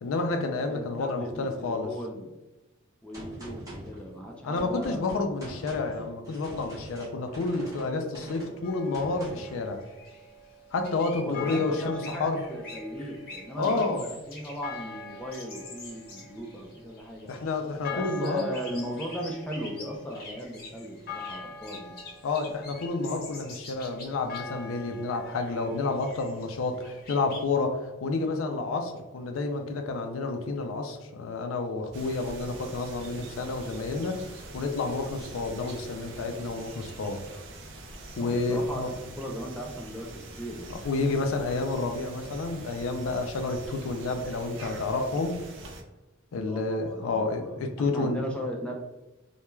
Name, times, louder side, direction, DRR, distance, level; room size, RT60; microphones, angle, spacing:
voice 1, 0.0-1.9 4.4-9.8 10.7-12.4 13.6-14.1 17.3-18.5 22.2-37.2 38.2-38.9 40.7-45.4 46.3-48.3, left 3 dB, 85° left, 5 dB, 0.4 m, -30 dB
voice 2, 0.6-2.3 3.0-5.3 11.2-17.3 17.9-22.0 38.2-40.7 46.4-48.7, equal, 5° left, 0 dB, 0.3 m, -37 dB
Gunshot gunfire, 3.1-9.6, equal, 15° right, 0.8 m, -44 dB
sound 1, 8.6-27.4, left 2 dB, 50° left, 0.7 m, -43 dB
sound 2, 31.9-45.8, right 2 dB, 65° right, 0.5 m, -44 dB
2.2 x 2.2 x 3.0 m, 1.1 s
head